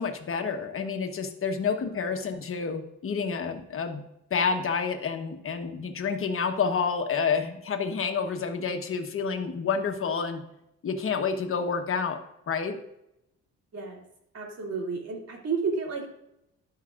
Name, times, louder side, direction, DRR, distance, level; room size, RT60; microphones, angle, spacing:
voice 1, 0.0-4.0 4.3-10.4 10.8-12.2 12.5-12.8, left 5 dB, 45° left, 6 dB, 1.2 m, -29 dB
voice 2, 13.7-14.0 14.3-16.1, right 4 dB, 60° right, 0 dB, 2.7 m, -31 dB
12.0 x 5.7 x 2.5 m, 0.81 s
cardioid pair, 90°, 30 cm